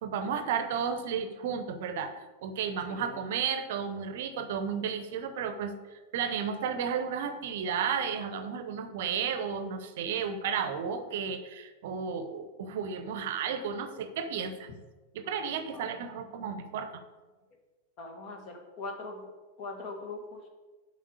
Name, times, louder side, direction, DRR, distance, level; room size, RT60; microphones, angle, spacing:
voice 1, 0.0-14.7 15.1-16.9, right 7 dB, 55° right, 10 dB, 0.8 m, -33 dB
voice 2, 2.9-3.2 15.7-15.9 18.0-19.3 19.6-20.4, left 3 dB, 45° left, 3 dB, 1.8 m, -41 dB
7.3 x 5.4 x 6.9 m, 1.2 s
figure-of-eight pair, 90°, 0 cm